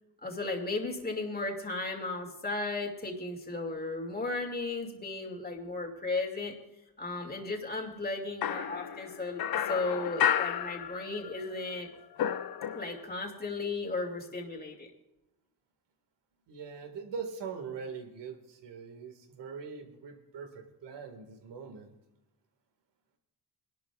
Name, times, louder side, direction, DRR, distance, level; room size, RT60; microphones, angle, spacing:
voice 1, 0.2-6.5 7.0-11.9 12.7-14.9, left 3 dB, 20° left, 1 dB, 2.4 m, -35 dB
sound 1, 8.4-11.4 11.7-13.2, left 9 dB, 60° left, 0.7 m, -32 dB
voice 2, 16.5-21.9, right 6 dB, 85° right, 5 dB, 2.0 m, -42 dB
23.0 x 11.5 x 2.4 m, 0.96 s
cardioid pair, 100°, 42 cm